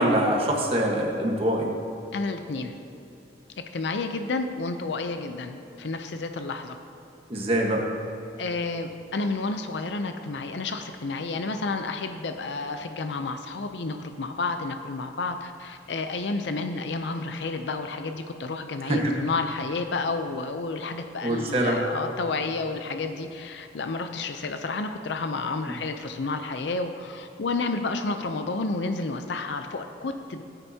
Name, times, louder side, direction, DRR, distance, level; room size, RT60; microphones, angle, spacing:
voice 1, 0.0-1.7 7.3-7.9 18.9-19.1 21.2-21.8 25.7-25.8, right 1 dB, 35° right, 0 dB, 1.3 m, -24 dB
voice 2, 2.1-2.7 3.7-6.8 8.4-30.4, left 3 dB, 80° left, 7 dB, 0.6 m, -30 dB
16.5 x 9.0 x 2.8 m, 3.0 s
head